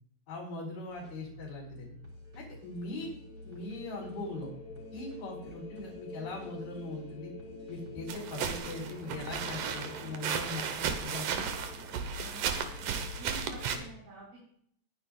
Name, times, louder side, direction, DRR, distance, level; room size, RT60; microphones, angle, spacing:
voice 1, 0.3-1.9 2.4-3.1 3.4-4.5 4.9-7.3 7.7-11.4, left 2 dB, 65° left, -7 dB, 5.3 m, -41 dB
sound 1, 0.9-13.7, left 1 dB, 30° right, 5.5 m, -51 dB
sound 2, 2.0-13.9, left 3 dB, 90° left, 3.6 m, -49 dB
sound 3, 8.1-13.8, right 7 dB, 65° right, 2.3 m, -35 dB
voice 2, 12.1-14.5, right 2 dB, 90° right, -8 dB, 7.7 m, -49 dB
21.0 x 10.0 x 2.4 m, 0.64 s
omnidirectional pair, 4.6 m